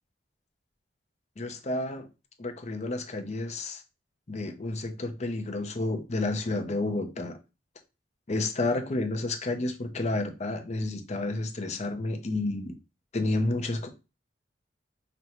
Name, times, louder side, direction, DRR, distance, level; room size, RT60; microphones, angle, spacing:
voice 1, 1.4-2.1 2.4-3.8 4.3-7.4 8.3-12.8 13.1-13.9, left 2 dB, 40° left, 6 dB, 0.6 m, -30 dB
5.0 x 2.2 x 2.9 m, 0.29 s
head